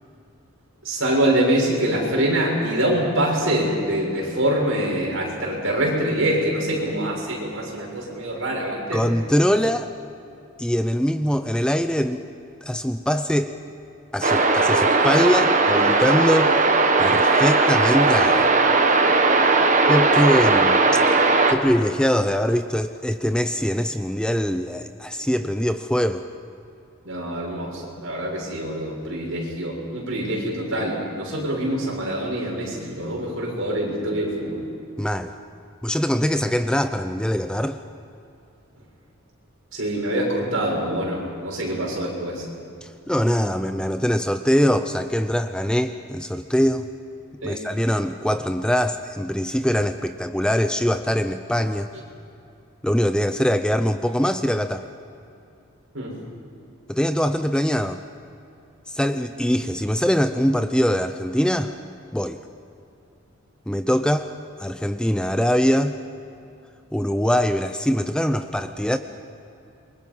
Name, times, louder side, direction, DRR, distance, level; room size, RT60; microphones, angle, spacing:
voice 1, 0.8-9.0 27.0-34.6 39.7-42.4 47.4-47.6 55.9-56.2, right 1 dB, 65° right, -2 dB, 6.9 m, -25 dB
voice 2, 8.9-9.9 10.6-12.2 12.6-13.5 14.1-16.5 17.0-18.6 19.9-20.8 21.5-26.2 35.0-35.3 35.8-37.8 42.8-46.9 47.4-51.9 52.8-54.9 56.9-58.0 58.9-61.7 62.1-62.4 63.7-64.3 64.6-65.9 66.9-69.0, equal, 5° left, 9 dB, 0.5 m, -22 dB
sound 1, 14.2-21.5, right 3 dB, 35° right, 1.4 m, -18 dB
27.5 x 23.0 x 5.6 m, 2.7 s
head